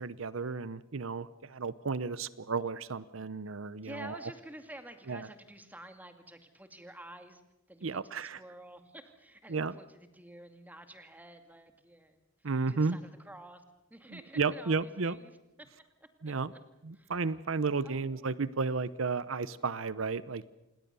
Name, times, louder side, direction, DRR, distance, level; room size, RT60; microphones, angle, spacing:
voice 1, 0.0-4.3 5.1-5.3 7.8-8.4 9.5-9.7 12.4-13.0 14.1-15.2 16.2-16.5 16.8-20.5, right 4 dB, 85° right, 17 dB, 0.8 m, -33 dB
voice 2, 3.8-7.4 7.7-13.6 13.9-15.7 16.0-16.3 16.9-17.1 17.8-18.3, right 1 dB, 10° right, 7 dB, 2.2 m, -50 dB
27.5 x 19.5 x 6.9 m, 0.95 s
head